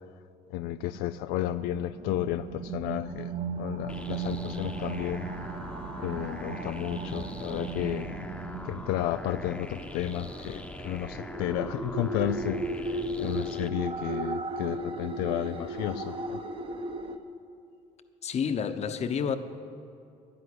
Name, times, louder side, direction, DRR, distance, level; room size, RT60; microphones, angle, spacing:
voice 1, 0.5-5.3 6.0-8.1 8.6-16.4, left 13 dB, 90° left, 0.5 m, -32 dB
sound 1, 1.4-17.2, right 3 dB, 35° right, 1.2 m, -36 dB
sound 2, 3.9-13.7, left 1 dB, 5° left, 1.0 m, -42 dB
voice 2, 18.2-19.4, left 7 dB, 45° left, 1.0 m, -29 dB
11.5 x 11.0 x 9.9 m
cardioid pair, 100°, 15 cm